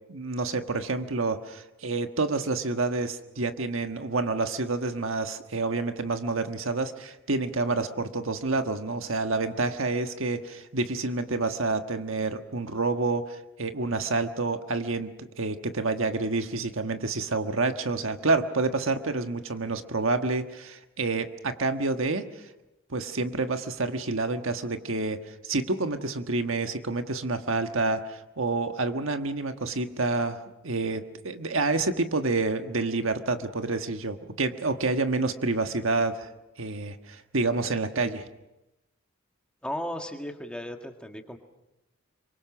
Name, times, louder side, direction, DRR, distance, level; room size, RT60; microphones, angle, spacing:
voice 1, 0.1-22.3 22.9-36.3 36.6-38.2, right 3 dB, 70° right, 7 dB, 1.4 m, -28 dB
voice 2, 39.6-41.4, left 1 dB, 5° left, 4 dB, 1.7 m, -35 dB
26.0 x 24.0 x 6.2 m, 0.96 s
head